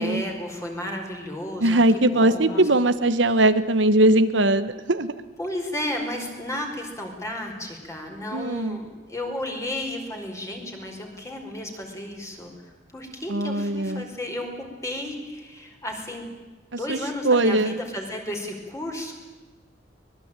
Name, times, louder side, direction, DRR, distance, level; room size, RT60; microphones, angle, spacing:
voice 1, 0.0-1.8 2.1-2.6 5.4-14.5 14.8-16.3 16.8-19.1, left 1 dB, 15° left, 2 dB, 5.0 m, -33 dB
voice 2, 1.6-5.1 8.3-8.8 13.3-14.0 16.9-17.0 17.2-17.8, right 1 dB, 80° right, 11 dB, 1.3 m, -20 dB
24.5 x 21.0 x 9.1 m, 1.2 s
head